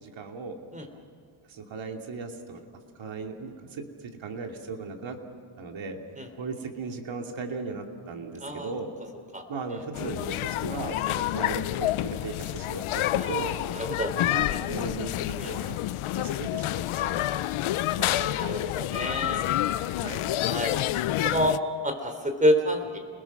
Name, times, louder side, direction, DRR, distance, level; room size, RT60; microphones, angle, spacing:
voice 1, 0.0-0.6 1.5-2.6 3.0-5.2 5.6-6.0 6.4-8.9 9.5-13.5 14.2-15.8 16.2-17.2 18.0-18.6 19.1-19.7 20.0-20.2, right 4 dB, 70° right, 3 dB, 2.8 m, -37 dB
voice 2, 8.4-8.7 9.3-9.4 9.7-9.8 11.1-11.2 13.2-14.1 14.5-14.6 15.4-15.5 18.2-19.4 20.4-20.8 21.2-21.6 21.8-23.0, equal, 15° right, 6 dB, 3.7 m, -28 dB
sound 1, 9.9-21.6, left 14 dB, 85° left, 0.7 m, -28 dB
29.5 x 21.0 x 6.1 m, 2.1 s
cardioid pair, 105°, 48 cm